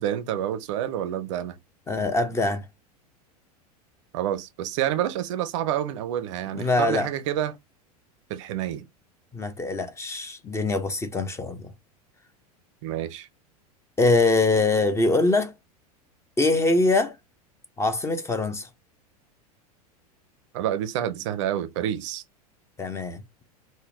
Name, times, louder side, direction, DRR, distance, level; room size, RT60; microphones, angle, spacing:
voice 1, 0.0-1.6 4.1-7.6 8.3-8.8 12.8-13.3 20.5-22.2, right 11 dB, 50° right, 0.5 m, -28 dB
voice 2, 1.9-2.6 6.5-7.1 9.3-11.7 14.0-15.5 16.4-17.1 17.8-18.7 22.8-23.4, left 2 dB, 15° left, 0.6 m, -23 dB
3.6 x 2.1 x 2.6 m
figure-of-eight pair, 85°, 20 cm